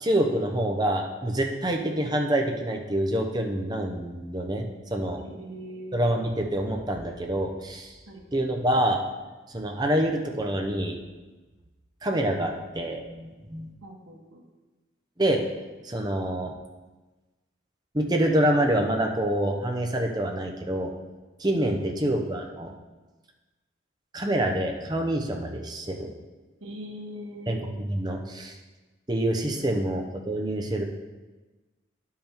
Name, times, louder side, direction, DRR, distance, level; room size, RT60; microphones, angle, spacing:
voice 1, 0.0-4.7 4.9-5.2 5.9-7.9 8.3-9.0 9.5-11.0 12.0-13.7 15.2-15.4 15.8-16.5 17.9-20.9 21.4-22.7 24.1-26.1 27.5-27.6 27.9-28.6 29.1-30.8, right 1 dB, 20° right, 2 dB, 0.8 m, -26 dB
voice 2, 5.2-6.0 8.1-8.3 13.8-14.4 21.8-22.0 26.6-27.5 29.5-29.9, equal, 85° right, 0 dB, 1.5 m, -41 dB
10.5 x 5.6 x 4.5 m, 1.2 s
head